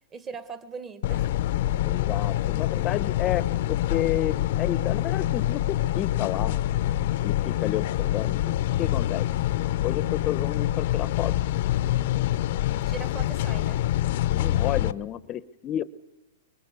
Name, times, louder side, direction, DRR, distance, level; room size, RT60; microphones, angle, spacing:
voice 1, 0.1-1.3 1.7-2.1 12.9-13.9, right 5 dB, 25° right, 1.5 m, -40 dB
sound 1, 1.0-14.9, left 13 dB, 60° left, 0.8 m, -26 dB
voice 2, 1.9-6.6 7.2-8.4 8.8-9.3 9.8-11.3 14.3-15.8, left 12 dB, 30° left, 0.8 m, -31 dB
25.0 x 22.5 x 6.8 m
hypercardioid pair, 135°, 0 cm